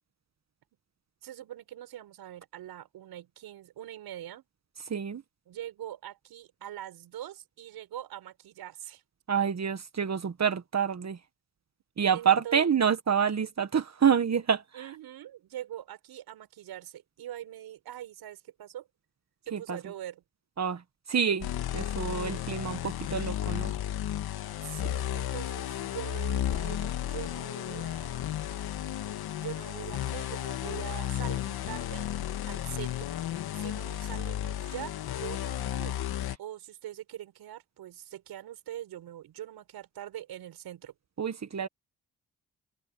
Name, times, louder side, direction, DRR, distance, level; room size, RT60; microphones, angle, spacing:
voice 1, 1.2-4.4 5.5-9.0 12.1-12.7 14.7-18.9 19.5-20.2 24.6-28.5 29.4-32.1 32.5-33.1 33.5-40.9, right 12 dB, 85° right, 6.4 m, -43 dB
voice 2, 4.9-5.2 9.3-11.2 12.0-14.6 19.5-19.8 20.6-20.8 21.1-23.7 41.2-41.7, right 7 dB, 45° right, 1.6 m, -27 dB
sound 1, 21.4-36.4, left 12 dB, 80° left, 2.4 m, -33 dB
open air
supercardioid pair, 55°, 36 cm